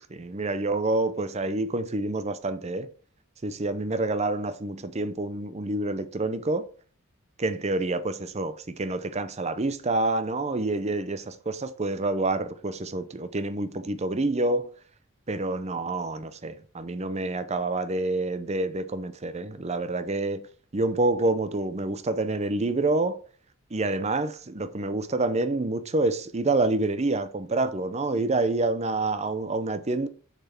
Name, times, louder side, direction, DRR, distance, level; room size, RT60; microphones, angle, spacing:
voice 1, 0.1-2.9 3.4-6.7 7.4-14.7 15.3-20.5 20.7-23.2 23.7-30.1, right 2 dB, 30° right, 0.6 m, -27 dB
6.7 x 6.0 x 4.4 m
head